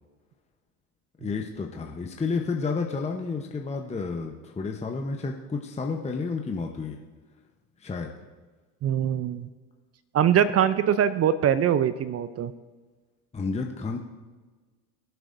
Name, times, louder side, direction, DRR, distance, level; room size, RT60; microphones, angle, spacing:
voice 1, 1.2-7.0 7.8-8.1 13.3-14.0, left 4 dB, 15° left, 2 dB, 0.9 m, -31 dB
voice 2, 8.8-9.5 10.1-12.5, right 9 dB, 30° right, 14 dB, 0.5 m, -23 dB
22.0 x 7.9 x 2.6 m, 1.3 s
hypercardioid pair, 80°, 47 cm